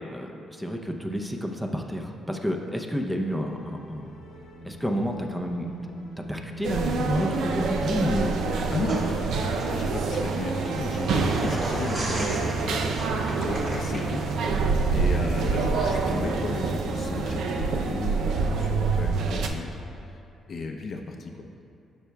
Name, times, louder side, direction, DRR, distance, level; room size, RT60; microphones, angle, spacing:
voice 1, 0.1-4.1 4.6-5.7 6.2-9.1, equal, 5° right, 3 dB, 0.6 m, -30 dB
sound 1, 3.0-19.1, right 1 dB, 80° left, 0.9 m, -39 dB
sound 2, 6.6-19.5, right 4 dB, 80° right, 0.5 m, -27 dB
voice 2, 8.7-9.2 9.7-14.6 14.9-20.2 20.5-21.5, left 3 dB, 55° left, 3 dB, 0.6 m, -35 dB
sound 3, 8.8-14.4, right 1 dB, 45° right, 1.4 m, -36 dB
12.5 x 5.5 x 2.3 m, 2.5 s
cardioid pair, 90°, 0 cm